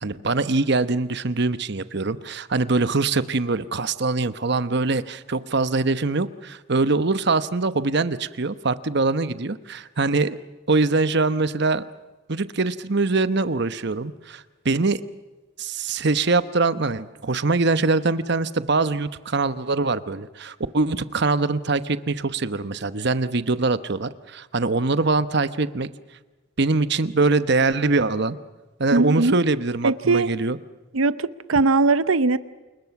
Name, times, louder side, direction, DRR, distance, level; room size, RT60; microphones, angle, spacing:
voice 1, 0.0-10.4 10.7-11.8 12.3-15.0 15.6-25.9 26.6-28.4 28.8-30.6, right 3 dB, 55° right, 1.0 m, -23 dB
voice 2, 28.9-29.4 29.8-30.3 30.9-32.4, right 3 dB, 90° right, 0.8 m, -20 dB
28.5 x 21.5 x 6.0 m
head